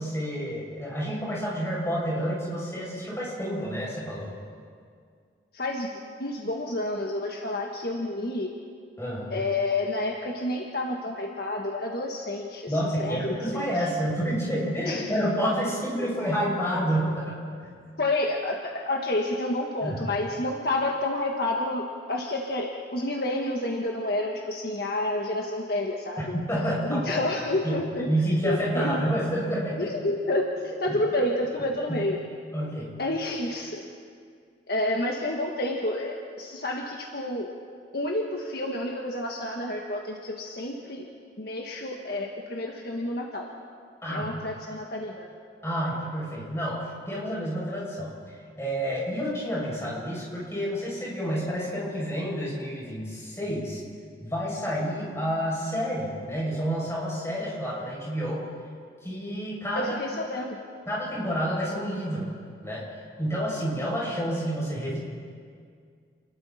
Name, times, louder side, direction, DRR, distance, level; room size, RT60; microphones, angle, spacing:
voice 1, 0.0-4.3 9.0-9.3 12.7-17.4 19.8-20.1 26.5-27.2 27.6-29.9 30.9-31.0 31.9-32.0 32.5-32.9 44.0-44.3 45.6-48.1 48.6-53.8 54.2-58.4 59.0-59.9 60.9-62.3 62.6-62.8 63.2-65.0, equal, 15° left, -6 dB, 7.3 m, -29 dB
voice 2, 5.5-8.5 9.3-13.9 14.8-15.1 18.0-26.3 26.8-28.1 28.4-29.0 29.8-32.2 33.0-33.8 34.7-37.5 37.9-41.0 41.4-43.5 44.1-45.3 59.7-60.6, left 1 dB, 55° left, 0 dB, 1.6 m, -29 dB
29.5 x 21.0 x 4.4 m, 2.1 s
head